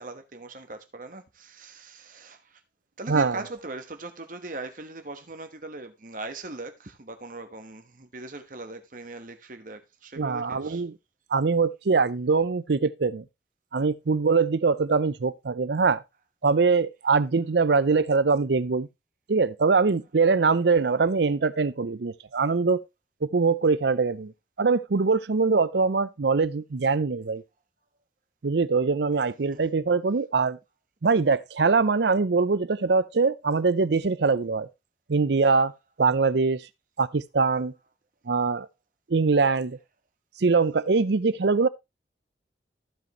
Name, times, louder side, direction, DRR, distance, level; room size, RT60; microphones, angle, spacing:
voice 1, 0.0-2.6 3.0-10.9 29.5-29.6, right 2 dB, 45° right, 1.2 m, -40 dB
voice 2, 3.1-3.4 10.2-10.9 11.3-13.2 13.7-16.0 16.4-18.9 19.3-22.8 23.2-24.3 24.6-27.4 28.4-30.6 31.0-34.7 35.1-35.7 36.0-36.6 37.0-37.7 38.3-38.7 39.1-39.8 40.4-41.7, right 4 dB, 70° right, 0.6 m, -23 dB
15.0 x 5.2 x 3.0 m
head